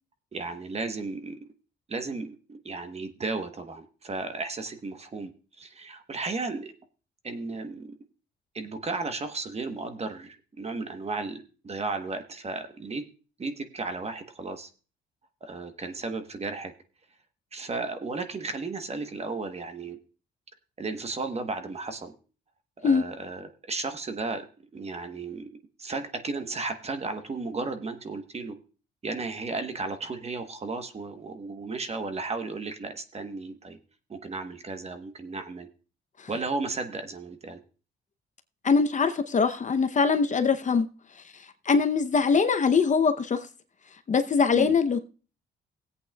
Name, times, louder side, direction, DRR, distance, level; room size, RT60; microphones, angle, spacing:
voice 1, 0.3-1.4 1.9-5.3 5.6-6.8 7.2-7.9 8.5-13.0 13.4-14.7 15.4-16.7 17.5-20.0 20.8-22.1 22.8-24.5 24.7-25.5 25.8-28.6 29.0-33.8 34.1-35.7 36.3-37.6 44.5-44.8, right 3 dB, 30° right, 1.1 m, -34 dB
voice 2, 38.6-40.9 41.7-43.5 44.1-45.0, left 5 dB, 40° left, 0.7 m, -22 dB
19.5 x 8.3 x 2.3 m
cardioid pair, 90°, 20 cm